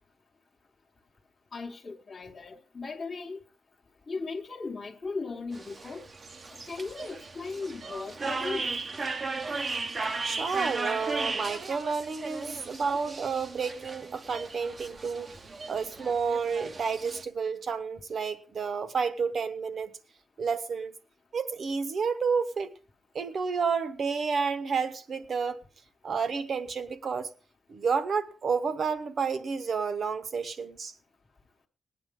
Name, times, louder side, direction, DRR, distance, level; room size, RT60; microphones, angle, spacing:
voice 1, 1.5-3.4 4.1-6.0 6.5-8.7, left 4 dB, 25° left, 1.1 m, -37 dB
sound 1, 5.5-17.2, right 3 dB, 30° right, 0.7 m, -36 dB
voice 2, 10.2-15.3 15.7-19.9 20.4-20.9 21.3-22.8 23.1-25.6 26.0-27.3 27.7-30.9, right 5 dB, 45° right, 1.0 m, -30 dB
19.5 x 9.4 x 3.7 m
wide cardioid pair, 180°, 0 cm